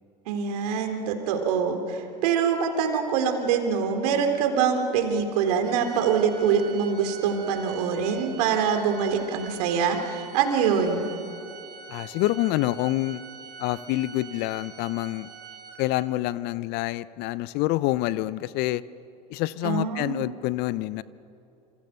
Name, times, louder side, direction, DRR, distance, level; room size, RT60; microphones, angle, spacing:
voice 1, 0.3-11.1 19.6-20.2, right 6 dB, 65° right, 5 dB, 3.7 m, -24 dB
Organ, 5.6-16.3, right 6 dB, 50° right, 4.8 m, -44 dB
voice 2, 11.9-13.2 13.6-15.3 15.8-18.8 19.3-21.0, left 17 dB, 50° left, 18 dB, 0.8 m, -27 dB
27.5 x 27.0 x 6.7 m, 2.6 s
hypercardioid pair, 85°, 21 cm